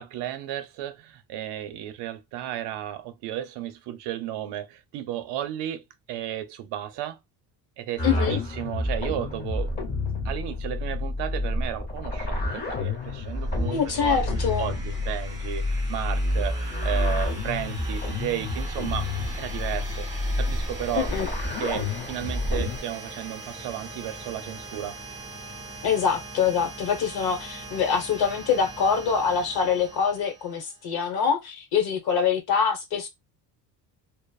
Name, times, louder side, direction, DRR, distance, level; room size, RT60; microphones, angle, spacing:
voice 1, 0.0-7.2 7.8-9.7 10.2-14.2 14.6-19.1 19.4-20.1 20.4-21.1 21.6-25.0, right 12 dB, 75° right, 0.6 m, -33 dB
voice 2, 8.0-8.4 13.7-14.7 20.9-21.3 25.8-33.1, left 6 dB, 60° left, 1.1 m, -25 dB
sound 1, 8.0-22.8, left 2 dB, 25° left, 0.8 m, -29 dB
sound 2, 13.3-30.9, right 2 dB, 10° right, 0.5 m, -41 dB
3.0 x 2.1 x 2.3 m
cardioid pair, 180°, 42 cm